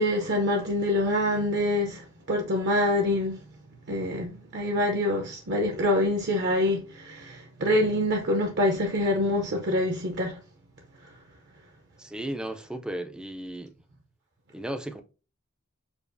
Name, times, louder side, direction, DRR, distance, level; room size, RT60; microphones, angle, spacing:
voice 1, 0.0-3.4 3.9-10.4 11.0-11.1, left 1 dB, 55° right, 0.7 m, -26 dB
voice 2, 12.0-13.7 14.5-15.0, right 1 dB, 5° right, 0.4 m, -35 dB
6.9 x 2.4 x 2.6 m
head